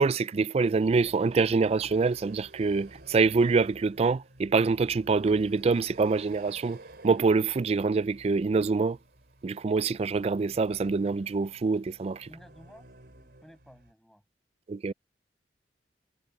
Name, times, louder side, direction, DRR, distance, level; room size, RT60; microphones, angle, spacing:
voice 1, 0.0-9.0 9.4-12.3 14.7-14.9, right 4 dB, 35° right, 0.3 m, -25 dB
sound 1, 0.8-13.9, right 1 dB, 60° right, 3.9 m, -53 dB
voice 2, 12.3-14.2, equal, ahead, 6.7 m, -54 dB
head